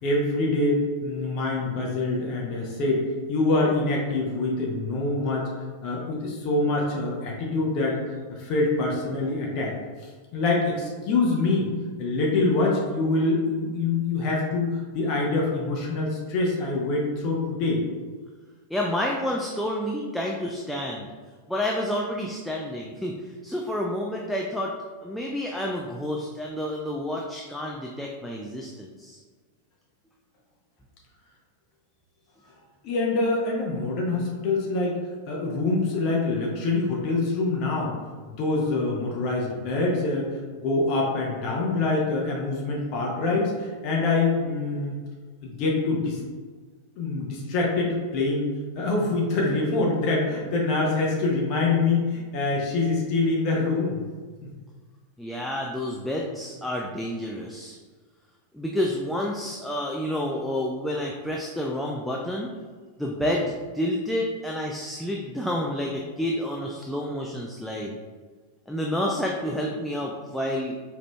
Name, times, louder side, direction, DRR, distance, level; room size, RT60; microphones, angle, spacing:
voice 1, 0.0-5.5 5.8-8.0 8.3-9.7 10.0-11.7 12.0-17.8 32.8-35.0 35.3-37.9 38.3-45.0 45.4-46.2 47.0-48.5 48.8-54.0, left 3 dB, 40° left, -2 dB, 0.7 m, -25 dB
voice 2, 18.7-21.1 21.5-23.2 23.4-24.7 25.0-29.2 55.2-57.8 58.5-62.5 63.0-67.9 68.7-70.7, left 1 dB, ahead, -2 dB, 0.3 m, -29 dB
4.8 x 2.9 x 2.2 m, 1.5 s
figure-of-eight pair, 90°, 0 cm